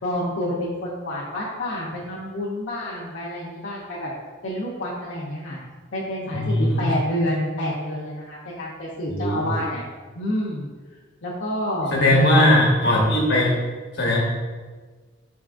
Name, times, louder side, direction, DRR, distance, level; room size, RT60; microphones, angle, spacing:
voice 1, 0.0-4.1 4.4-5.6 5.9-9.8 10.1-10.7 11.2-12.4 12.8-12.9, left 1 dB, 85° left, -5 dB, 0.7 m, -28 dB
voice 2, 6.3-6.8 9.1-9.6 11.9-13.5 13.9-14.2, left 1 dB, 60° left, -3 dB, 1.2 m, -19 dB
5.2 x 3.6 x 2.4 m, 1.4 s
head